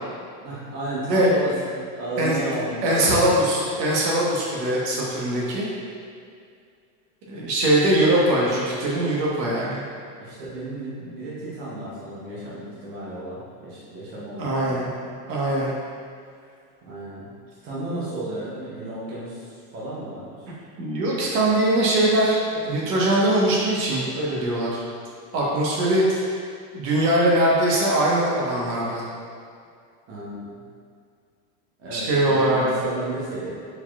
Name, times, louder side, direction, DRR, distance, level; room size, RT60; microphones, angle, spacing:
voice 1, 0.4-3.3 10.2-15.0 16.8-17.3 17.6-20.5 30.1-30.6 31.8-33.5, right 1 dB, 25° right, -8 dB, 0.8 m, -33 dB
voice 2, 2.8-5.7 7.3-9.8 14.4-14.9 15.3-15.7 20.8-24.8 25.3-26.4 26.7-29.0 31.9-32.6, right 1 dB, 75° right, -5 dB, 1.3 m, -21 dB
4.8 x 4.0 x 2.3 m, 2.3 s
supercardioid pair, 175°, 49 cm